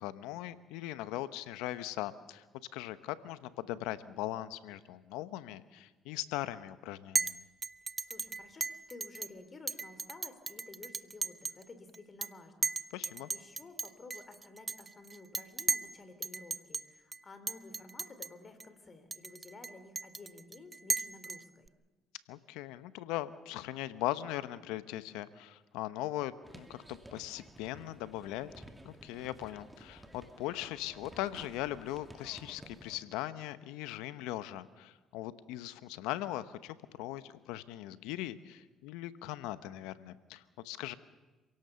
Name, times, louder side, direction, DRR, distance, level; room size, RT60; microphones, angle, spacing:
voice 1, 0.0-2.4 2.7-7.4 12.9-13.3 22.3-28.5 28.8-41.0, left 14 dB, 85° left, 14 dB, 0.9 m, -39 dB
Chink clink, 7.1-7.3 7.6-9.3 9.7-11.6 11.9-12.3 12.6-15.9 16.2-16.8 17.1-17.2 17.5-18.3 18.6-18.7 19.1-21.7, right 4 dB, 30° right, 0.7 m, -35 dB
voice 2, 8.1-12.8 13.3-21.7, left 3 dB, 35° left, 10 dB, 3.5 m, -53 dB
sound 1, 26.4-33.0, right 1 dB, 10° right, 2.5 m, -54 dB
27.0 x 17.5 x 6.9 m, 1.2 s
supercardioid pair, 70°, 0 cm